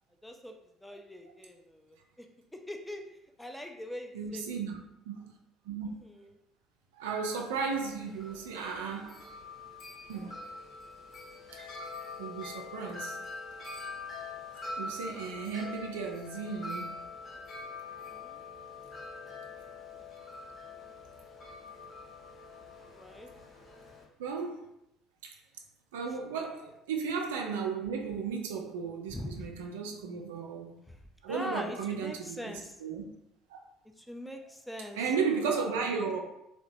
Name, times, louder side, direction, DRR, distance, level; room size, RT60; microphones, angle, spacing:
voice 1, 0.2-0.6 0.8-2.3 2.5-3.1 3.4-4.5 5.9-6.3 15.3-15.6 18.0-18.4 22.9-23.3 29.1-29.5 30.9-31.0 31.3-32.8 34.0-36.2, left 1 dB, 5° left, 3 dB, 0.4 m, -43 dB
voice 2, 4.1-4.8 5.1-5.3 5.7-6.0 7.0-9.2 10.1-10.4 12.2-13.2 14.8-17.0 18.0-18.1 24.2-24.7 25.2-25.3 25.9-30.8 31.2-33.0 33.5-33.6 34.9-36.2, right 5 dB, 70° right, 2 dB, 0.3 m, -34 dB
Wind chime, 7.6-24.0, left 3 dB, 35° left, 0.9 m, -44 dB
2.8 x 2.0 x 2.6 m, 0.82 s
figure-of-eight pair, 55°, 0 cm